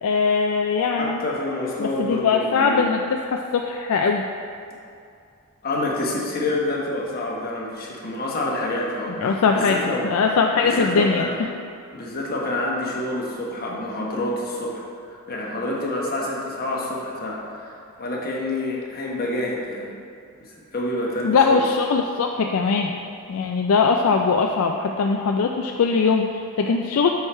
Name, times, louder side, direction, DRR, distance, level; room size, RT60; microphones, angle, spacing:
voice 1, 0.0-1.2 1.8-4.3 9.1-11.5 21.2-22.9 23.3-27.1, left 5 dB, 70° left, 2 dB, 0.3 m, -21 dB
voice 2, 1.0-2.9 5.6-9.2 9.5-10.1 10.6-11.4 11.9-19.9 20.7-21.6, left 1 dB, 45° left, -3 dB, 1.2 m, -27 dB
6.5 x 4.7 x 4.3 m, 2.4 s
head